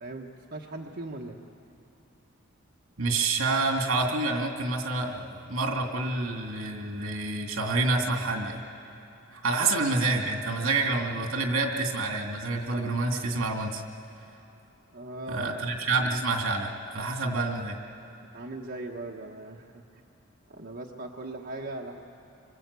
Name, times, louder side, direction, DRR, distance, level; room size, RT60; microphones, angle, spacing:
voice 1, 0.0-1.4 9.6-9.8 14.9-16.1 17.0-17.1 18.3-20.0 20.5-22.0, right 2 dB, 50° right, -1 dB, 1.1 m, -39 dB
voice 2, 3.0-8.6 9.3-13.8 15.3-17.8, right 3 dB, 80° right, 2 dB, 2.6 m, -28 dB
26.0 x 24.5 x 8.3 m, 2.9 s
head